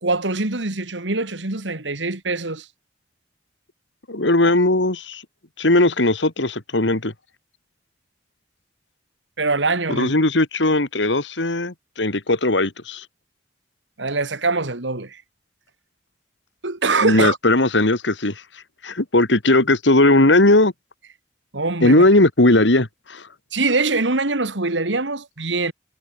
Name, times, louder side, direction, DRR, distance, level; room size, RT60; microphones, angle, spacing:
voice 1, 0.0-2.7 9.4-10.1 14.0-15.2 16.6-17.4 21.5-22.0 23.5-25.7, right 3 dB, 90° right, 2.5 m, -23 dB
voice 2, 4.1-5.2 5.6-7.1 9.9-13.0 17.0-18.3 18.8-20.7 21.8-23.2, left 2 dB, 85° left, 2.5 m, -18 dB
head